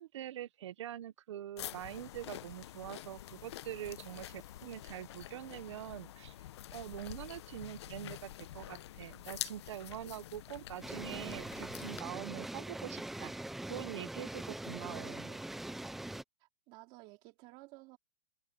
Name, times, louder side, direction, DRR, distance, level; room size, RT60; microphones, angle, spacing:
voice 1, 0.0-6.4 6.7-13.3 13.7-15.4, right 12 dB, 50° right, 1.1 m, -44 dB
sound 1, 1.6-12.0, left 13 dB, 45° left, 0.9 m, -47 dB
sound 2, 1.9-7.6, left 11 dB, 15° left, 6.7 m, -66 dB
sound 3, 10.8-16.2, right 1 dB, ahead, 0.4 m, -42 dB
voice 2, 16.4-18.0, right 22 dB, 25° right, 3.8 m, -54 dB
hypercardioid pair, 170°, 20 cm